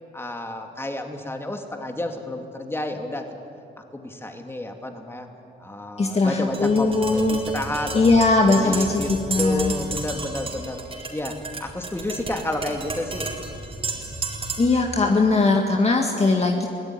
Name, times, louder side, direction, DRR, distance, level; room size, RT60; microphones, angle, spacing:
voice 1, 0.1-3.3 3.8-5.3 5.6-9.1 9.4-10.8 11.1-13.4 14.1-14.3, left 1 dB, 10° left, 4 dB, 2.7 m, -31 dB
voice 2, 6.0-7.4 7.9-9.7 14.6-16.7, left 3 dB, 30° left, 2 dB, 1.9 m, -20 dB
Tap, 6.5-14.8, right 3 dB, 30° right, 4.4 m, -32 dB
23.5 x 16.5 x 9.8 m, 2.6 s
cardioid pair, 90°, 20 cm